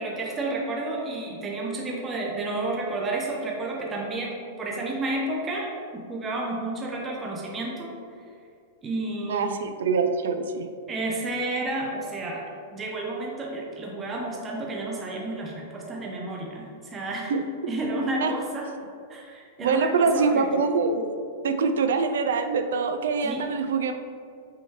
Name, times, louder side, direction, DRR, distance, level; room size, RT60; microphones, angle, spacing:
voice 1, 0.0-7.9 8.8-9.5 10.9-12.4 12.7-18.7 19.1-20.5 23.2-23.5, right 2 dB, 15° right, -2 dB, 0.4 m, -31 dB
voice 2, 9.3-10.7 17.3-17.4 18.2-18.3 19.6-23.9, right 4 dB, 90° right, 7 dB, 0.4 m, -24 dB
5.4 x 3.0 x 3.1 m, 2.3 s
supercardioid pair, 170°, 0 cm